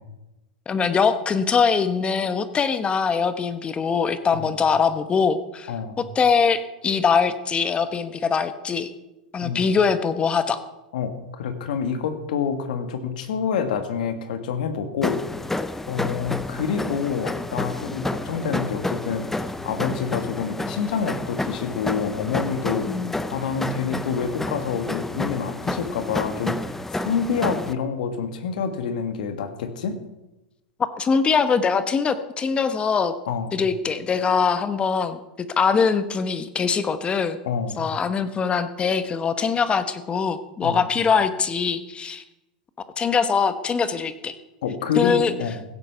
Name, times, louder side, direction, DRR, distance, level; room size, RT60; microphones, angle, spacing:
voice 1, 0.7-5.7 6.1-8.9 9.3-10.6 22.8-23.2 31.0-33.1 33.5-35.2 35.5-37.4 37.8-42.2 43.0-44.4 44.9-45.3, left 5 dB, 25° left, 11 dB, 1.1 m, -22 dB
voice 2, 5.7-6.0 9.4-9.6 10.9-15.6 15.9-22.9 23.3-30.0 33.3-33.6 37.4-37.8 40.6-40.8 44.6-45.6, left 6 dB, 75° left, 8 dB, 1.6 m, -27 dB
sound 1, 15.0-27.7, left 2 dB, 5° left, 0.6 m, -30 dB
16.0 x 7.8 x 5.7 m, 0.99 s
hypercardioid pair, 105°, 5 cm